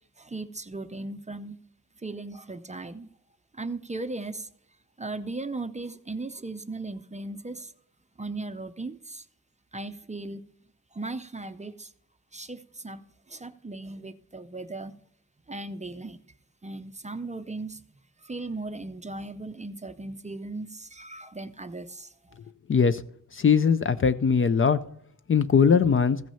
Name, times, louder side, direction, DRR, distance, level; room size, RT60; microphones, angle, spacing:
voice 1, 0.2-1.6 2.0-3.1 3.5-4.5 5.0-7.7 8.2-9.3 9.7-10.5 10.9-11.9 12.3-14.9 15.5-16.2 16.6-17.8 18.2-22.4, right 2 dB, 20° right, 10 dB, 0.5 m, -37 dB
voice 2, 22.7-23.0 23.3-24.8 25.3-26.2, left 6 dB, 40° left, 13 dB, 0.4 m, -20 dB
15.0 x 6.1 x 5.5 m, 0.68 s
wide cardioid pair, 165°, 33 cm